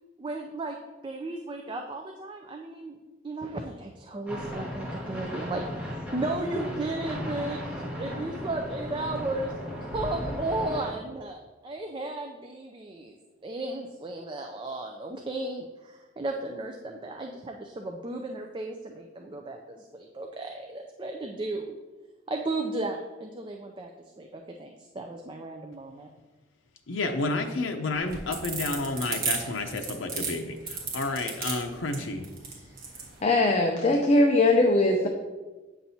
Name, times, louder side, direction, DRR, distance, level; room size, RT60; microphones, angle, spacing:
voice 1, 0.2-0.8 1.0-3.0 3.2-7.6 8.0-9.5 9.8-13.2 13.4-21.8 22.3-23.9 24.2-26.1, right 2 dB, 25° right, 3 dB, 0.4 m, -34 dB
sound 1, 4.3-10.9, equal, 5° right, 1.7 m, -36 dB
voice 2, 26.9-32.2, left 2 dB, 85° left, 4 dB, 0.6 m, -30 dB
sound 2, 28.0-33.1, right 5 dB, 50° right, 1.5 m, -33 dB
voice 3, 33.2-35.1, left 2 dB, 35° left, 2 dB, 0.5 m, -21 dB
8.8 x 5.9 x 2.7 m, 1.2 s
head